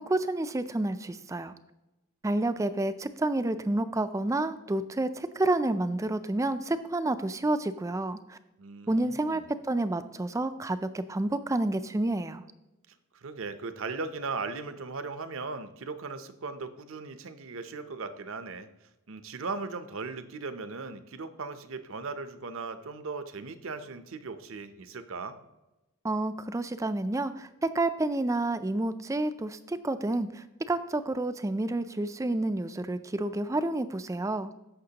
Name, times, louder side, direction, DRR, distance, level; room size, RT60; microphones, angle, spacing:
voice 1, 0.0-1.5 2.2-8.4 8.9-12.4 26.0-34.6, right 2 dB, 15° right, 11 dB, 0.3 m, -29 dB
voice 2, 8.6-9.6 12.9-18.7 19.1-25.4, right 4 dB, 65° right, 10 dB, 0.7 m, -38 dB
14.5 x 5.9 x 2.9 m, 0.97 s
head